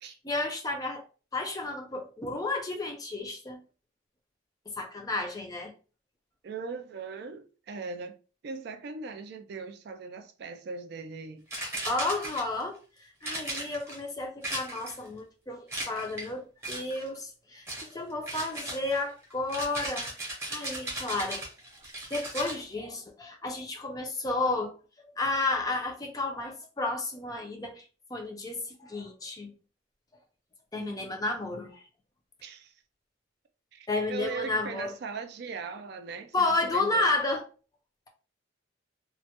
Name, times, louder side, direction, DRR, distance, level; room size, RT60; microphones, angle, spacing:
voice 1, 0.0-1.0 1.3-3.6 4.8-5.7 11.8-21.4 22.1-24.7 25.2-27.9 28.1-29.5 30.7-31.8 33.9-34.9 36.3-37.4, left 2 dB, 20° left, 0.4 m, -32 dB
voice 2, 6.4-8.2 8.4-11.4 30.7-31.2 32.4-32.7 33.7-37.2, right 4 dB, 55° right, 0.3 m, -39 dB
sound 1, 11.5-12.6 13.2-14.0 14.4-15.1 15.7-16.3 16.6-17.1 17.7-17.9 18.3-22.6, right 1 dB, 15° right, 0.7 m, -37 dB
2.2 x 2.1 x 2.8 m
head